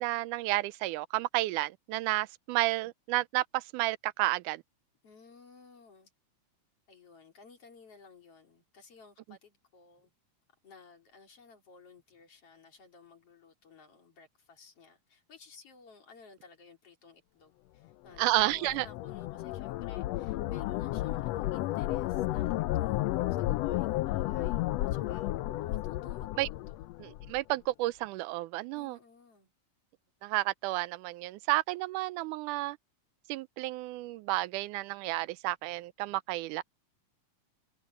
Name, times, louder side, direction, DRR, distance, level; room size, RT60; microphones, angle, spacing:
voice 1, 0.0-4.6 18.2-18.9 26.4-26.5 27.0-29.0 30.2-32.8 33.3-36.6, right 18 dB, 85° right, 2.1 m, -31 dB
voice 2, 5.0-6.1 6.9-10.1 10.6-25.3 25.6-26.8 28.7-29.5, left 4 dB, 50° left, 4.0 m, -56 dB
sound 1, 18.2-27.4, left 16 dB, 80° left, 1.4 m, -32 dB
omnidirectional pair, 3.5 m